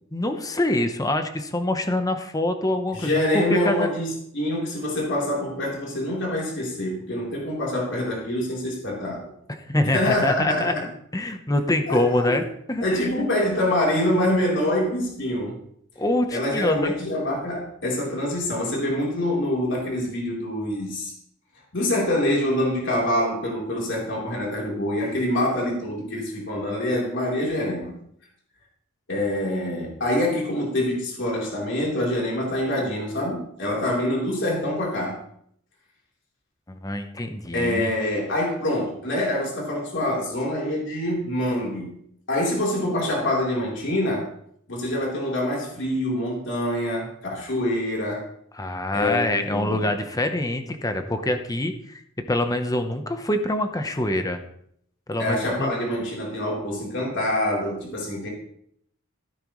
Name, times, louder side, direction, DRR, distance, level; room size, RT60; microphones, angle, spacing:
voice 1, 0.1-3.9 9.5-10.7 11.1-13.3 16.0-16.9 36.7-37.9 48.5-52.0 52.3-54.4 55.1-55.7, left 1 dB, 15° left, 7 dB, 0.9 m, -25 dB
voice 2, 2.9-9.3 9.9-10.9 11.9-12.4 12.8-15.5 16.3-21.1 21.7-27.9 29.1-35.2 37.5-42.0 42.3-44.3 44.7-48.3 48.9-49.9 55.2-58.3, left 1 dB, 60° left, -3 dB, 3.8 m, -25 dB
16.0 x 9.1 x 3.2 m, 0.69 s
head